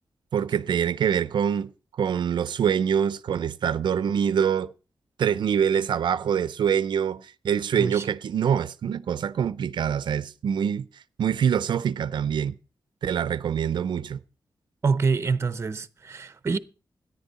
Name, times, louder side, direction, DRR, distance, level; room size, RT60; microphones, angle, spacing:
voice 1, 0.3-1.7 2.0-4.7 5.2-10.8 11.2-12.5 13.0-14.2, right 8 dB, 85° right, 0.5 m, -25 dB
voice 2, 14.8-16.6, right 4 dB, 35° right, 0.7 m, -26 dB
13.5 x 10.0 x 4.1 m
wide cardioid pair, 160°, 8 cm